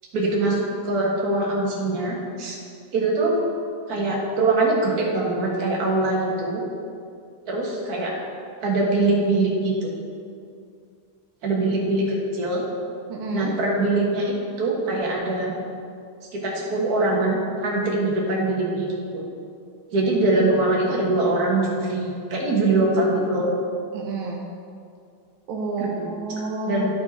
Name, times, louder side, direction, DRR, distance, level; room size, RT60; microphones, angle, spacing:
voice 1, 0.1-2.6 2.9-3.3 3.9-6.6 7.5-8.1 8.6-9.9 11.4-12.6 13.3-15.5 16.3-19.3 19.9-23.5 25.8-26.1 26.7-26.9, right 2 dB, 45° right, -3 dB, 1.8 m, -23 dB
voice 2, 13.1-13.5 23.9-24.4 25.5-26.9, right 2 dB, 80° right, -1 dB, 1.7 m, -29 dB
12.5 x 4.5 x 4.2 m, 2.4 s
omnidirectional pair, 2.4 m